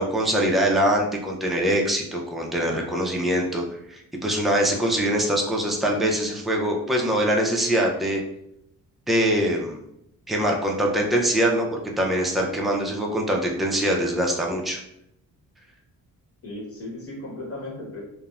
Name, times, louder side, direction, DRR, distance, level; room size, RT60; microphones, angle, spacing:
voice 1, 0.0-8.2 9.1-9.8 10.3-14.8, right 1 dB, ahead, -1 dB, 0.3 m, -23 dB
voice 2, 16.4-18.0, left 1 dB, 40° left, -3 dB, 1.0 m, -36 dB
2.9 x 2.0 x 2.3 m, 0.78 s
cardioid pair, 120°, 35 cm